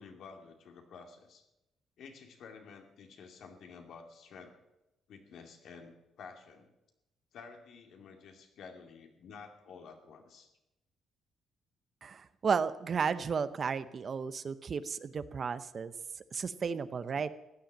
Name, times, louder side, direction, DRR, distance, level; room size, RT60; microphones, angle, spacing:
voice 1, 0.0-1.5 2.0-4.5 5.1-6.7 7.3-10.5 13.8-13.9 17.0-17.1, left 5 dB, 70° left, 4 dB, 2.4 m, -51 dB
voice 2, 12.0-15.9 16.3-17.3, right 6 dB, 45° right, 14 dB, 0.8 m, -33 dB
16.0 x 10.0 x 7.5 m, 0.96 s
cardioid pair, 90°, 0 cm